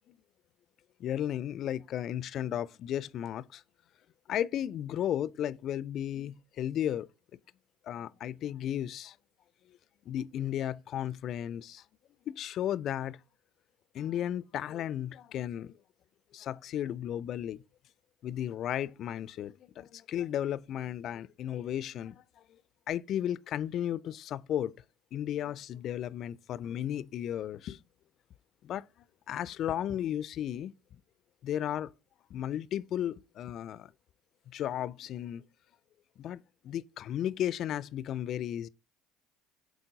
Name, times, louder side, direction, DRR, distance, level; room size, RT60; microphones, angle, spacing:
voice 1, 1.0-3.6 4.3-7.1 7.8-9.2 10.1-11.8 12.3-13.2 13.9-15.7 16.3-17.6 18.2-22.2 22.9-24.7 25.1-27.8 28.6-28.8 29.3-30.7 31.4-31.9 32.3-33.9 34.5-35.4 36.2-38.7, left 11 dB, 55° left, 0.3 m, -34 dB
8.0 x 4.0 x 3.9 m
hypercardioid pair, 65°, 0 cm